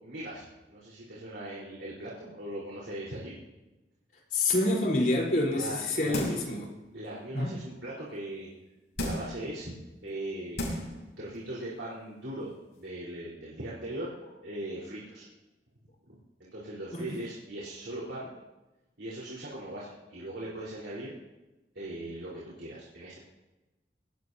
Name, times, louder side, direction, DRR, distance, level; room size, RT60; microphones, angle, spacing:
voice 1, 0.0-3.3 5.5-6.4 6.9-8.5 9.0-9.7 10.0-10.7 11.2-14.1 14.4-15.3 16.4-18.3 19.0-21.1 21.7-23.2, right 1 dB, 90° right, -7 dB, 4.4 m, -39 dB
voice 2, 4.3-6.7 7.3-7.5 16.9-17.1, left 2 dB, 50° left, -2 dB, 4.2 m, -27 dB
sound 1, 6.1-6.6 7.0-7.1 9.0-9.4 10.1-10.2 10.6-11.0 11.4-11.5, left 1 dB, 75° left, 6.4 m, -33 dB
23.5 x 19.0 x 2.8 m, 1.1 s
head